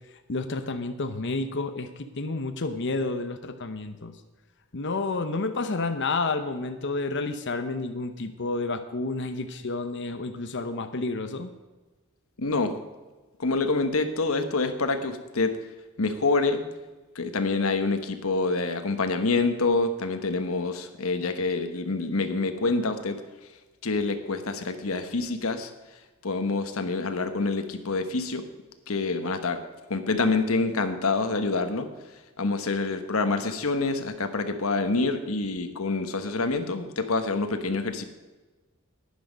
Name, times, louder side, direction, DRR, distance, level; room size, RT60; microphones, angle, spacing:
voice 1, 0.3-4.1 4.7-11.5, left 3 dB, 60° left, 7 dB, 0.8 m, -30 dB
voice 2, 12.4-12.8 13.4-15.6 16.0-16.6 17.1-23.2 23.8-25.7 26.2-28.4 28.9-29.6 29.9-31.9 32.4-38.0, left 3 dB, 85° left, 7 dB, 1.2 m, -26 dB
11.5 x 10.5 x 5.2 m, 1.2 s
head